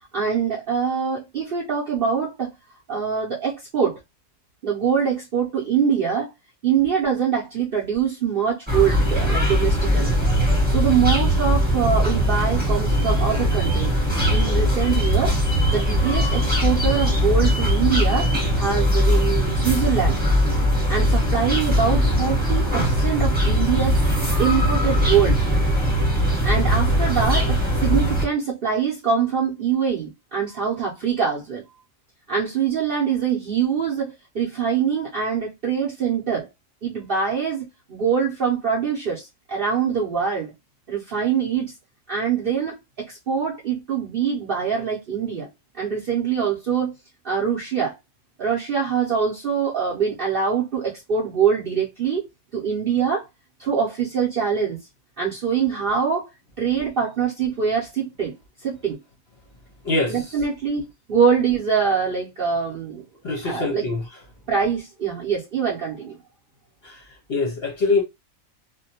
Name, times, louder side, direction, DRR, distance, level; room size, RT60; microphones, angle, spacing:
voice 1, 0.1-2.5 2.9-4.0 4.6-6.3 6.6-10.1 10.7-14.0 14.3-15.4 15.7-20.2 20.9-24.0 24.4-25.4 26.4-31.6 32.3-36.5 36.8-40.5 40.9-41.7 42.1-45.5 45.8-46.9 47.2-47.9 48.4-52.3 52.5-53.2 53.6-54.8 55.2-56.3 56.6-58.3 58.6-59.0 60.1-60.8 61.1-63.0 63.4-63.9 64.5-66.2, right 7 dB, 50° right, 0.7 m, -24 dB
sound 1, 8.7-28.3, equal, 10° right, 0.9 m, -20 dB
voice 2, 63.2-64.0 66.8-67.0 67.3-68.0, left 3 dB, 60° left, 0.7 m, -23 dB
2.5 x 2.2 x 2.7 m
omnidirectional pair, 1.4 m